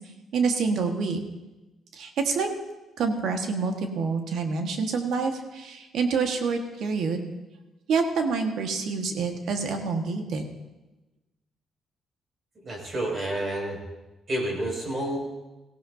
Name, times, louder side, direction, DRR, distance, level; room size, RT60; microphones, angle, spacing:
voice 1, 0.3-1.2 1.9-2.5 3.0-7.3 7.9-10.4, right 4 dB, 75° right, 4 dB, 1.6 m, -27 dB
voice 2, 12.5-13.8 14.3-15.2, right 1 dB, 45° right, -1 dB, 6.2 m, -29 dB
18.0 x 16.0 x 2.8 m, 1.1 s
cardioid pair, 90°, 0 cm